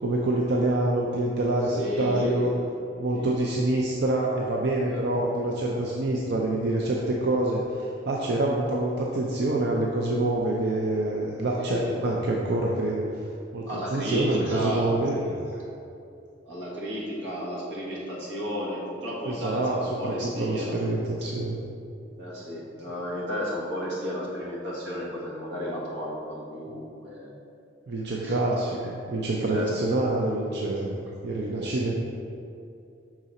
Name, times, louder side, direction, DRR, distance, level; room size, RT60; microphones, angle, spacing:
voice 1, 0.0-2.5 3.0-15.6 19.3-21.6 27.9-31.0 31.2-31.9, right 2 dB, 65° right, -2 dB, 0.5 m, -26 dB
voice 2, 1.7-2.6 3.1-3.6 4.8-5.0 11.5-12.0 13.7-14.9 16.4-20.8 22.2-27.3 28.2-28.3 29.5-29.7 31.6-31.8, equal, 90° right, -5 dB, 1.5 m, -33 dB
6.1 x 3.8 x 4.2 m, 2.6 s
head